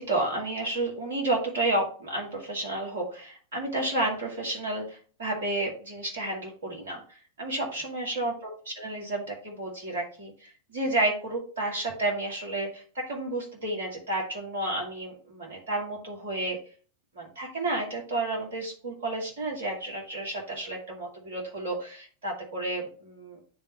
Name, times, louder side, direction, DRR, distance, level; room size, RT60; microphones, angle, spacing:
voice 1, 0.0-7.0 7.4-16.6 17.2-23.4, right 2 dB, 65° right, -1 dB, 2.4 m, -31 dB
9.3 x 3.7 x 3.1 m, 0.40 s
figure-of-eight pair, 90°, 0 cm